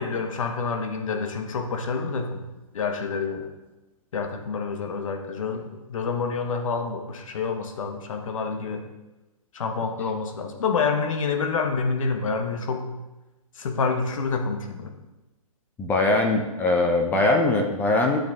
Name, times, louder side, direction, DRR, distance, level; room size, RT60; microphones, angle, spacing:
voice 1, 0.0-2.4 2.7-3.5 4.1-5.6 5.9-8.8 9.5-12.9 13.6-14.9, left 4 dB, 60° left, 5 dB, 1.1 m, -27 dB
voice 2, 15.8-18.2, left 2 dB, 10° left, 3 dB, 0.6 m, -21 dB
11.5 x 5.1 x 3.5 m, 1.1 s
hypercardioid pair, 140°, 19 cm